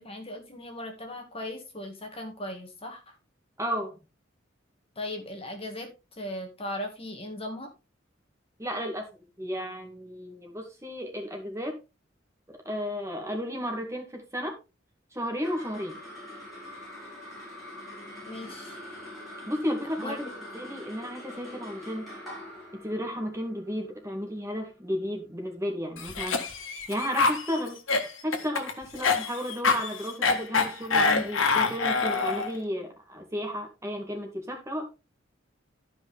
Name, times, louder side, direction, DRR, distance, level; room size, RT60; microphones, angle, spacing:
voice 1, 0.0-3.2 5.0-7.7 18.2-18.8 20.0-20.2 20.6-20.7, left 1 dB, 30° left, 4 dB, 2.0 m, -38 dB
voice 2, 3.6-4.0 8.6-9.1 9.4-11.8 12.5-14.6 15.1-16.0 19.5-22.1 22.7-26.4 26.7-27.8 28.2-34.9, equal, 15° right, 2 dB, 2.2 m, -33 dB
sound 1, 15.2-25.8, left 1 dB, ahead, 6.0 m, -44 dB
Cough, 26.0-32.6, left 4 dB, 80° left, 1.6 m, -26 dB
13.0 x 5.4 x 3.5 m, 0.27 s
head